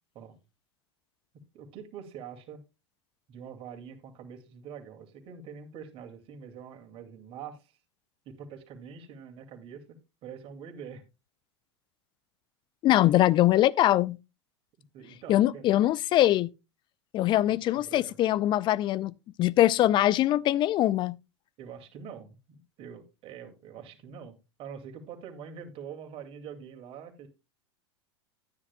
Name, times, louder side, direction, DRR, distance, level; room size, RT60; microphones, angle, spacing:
voice 1, 1.5-2.6 3.3-7.8 8.3-11.0 14.9-15.6 17.4-18.2 21.6-27.3, right 7 dB, 40° right, 2.3 m, -45 dB
voice 2, 12.8-14.2 15.3-16.5 17.1-19.1 19.4-21.2, left 14 dB, 35° left, 0.4 m, -22 dB
12.5 x 9.8 x 2.2 m
figure-of-eight pair, 85°, 15 cm